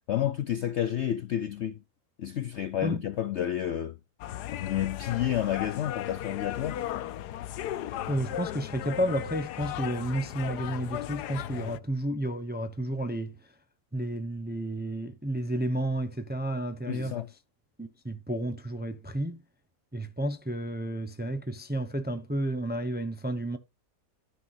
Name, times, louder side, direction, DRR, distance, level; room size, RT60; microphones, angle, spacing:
voice 1, 0.1-1.8 2.2-4.0 4.5-6.8 16.9-17.3, left 11 dB, 65° left, 0.7 m, -30 dB
sound 1, 4.2-11.8, left 12 dB, 80° left, 1.2 m, -36 dB
voice 2, 8.1-13.4 13.9-17.2 17.8-19.4 19.9-23.6, right 1 dB, 10° right, 0.6 m, -31 dB
13.5 x 5.8 x 2.6 m
omnidirectional pair, 1.7 m